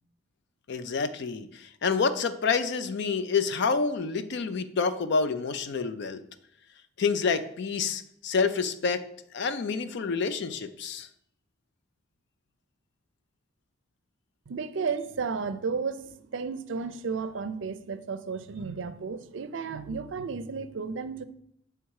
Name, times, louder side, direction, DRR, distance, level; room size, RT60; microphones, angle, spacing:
voice 1, 0.7-6.2 7.0-9.0 9.3-11.1, left 5 dB, 60° left, 0.5 m, -28 dB
voice 2, 14.5-21.3, right 5 dB, 65° right, 0.5 m, -33 dB
8.3 x 3.4 x 4.7 m
head